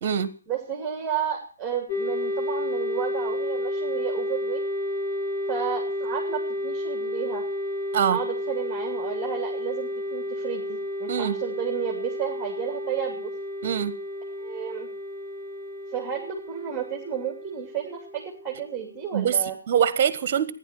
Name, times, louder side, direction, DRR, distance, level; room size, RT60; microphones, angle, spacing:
voice 1, 0.5-4.6 5.5-7.4 8.1-13.3 14.4-14.9 15.9-19.6, right 8 dB, 10° right, 0 dB, 2.9 m, -32 dB
sound 1, 1.9-19.3, left 1 dB, 15° left, 3.8 m, -31 dB
voice 2, 13.6-14.0 19.1-19.4 19.7-20.5, right 8 dB, 35° right, 14 dB, 1.6 m, -23 dB
15.5 x 10.5 x 7.6 m, 0.41 s
figure-of-eight pair, 135°, 0 cm